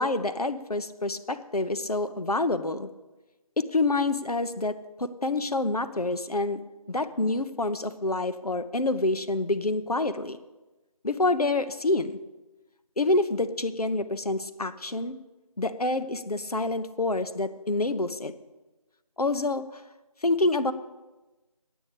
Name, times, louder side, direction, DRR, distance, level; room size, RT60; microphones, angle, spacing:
voice 1, 0.0-2.9 3.6-6.6 6.9-10.4 11.0-12.2 13.0-15.2 15.6-18.3 19.2-19.8 20.2-20.7, left 2 dB, 75° left, 10 dB, 0.9 m, -27 dB
9.1 x 8.7 x 6.8 m, 1.1 s
figure-of-eight pair, 180°, 20 cm